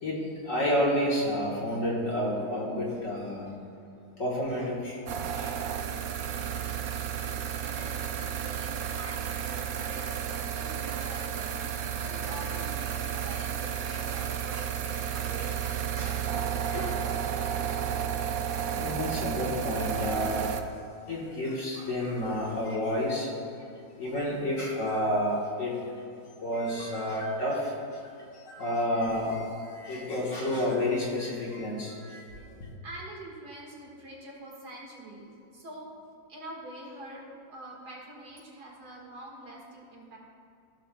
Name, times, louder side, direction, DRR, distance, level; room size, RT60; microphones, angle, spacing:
voice 1, 0.0-3.5 4.2-5.0 5.3-5.6 6.2-6.3 7.7-7.9 16.0-16.1 16.7-16.9 18.7-20.5 21.1-23.3 24.0-25.8 26.4-27.7 28.5-32.2, left 1 dB, 45° left, -5 dB, 1.6 m, -30 dB
sound 1, 5.1-20.6, right 8 dB, 80° right, 0.7 m, -32 dB
voice 2, 7.1-17.6 32.8-40.2, right 1 dB, 60° right, -4 dB, 2.2 m, -46 dB
15.0 x 6.7 x 2.2 m, 2.7 s
omnidirectional pair, 2.0 m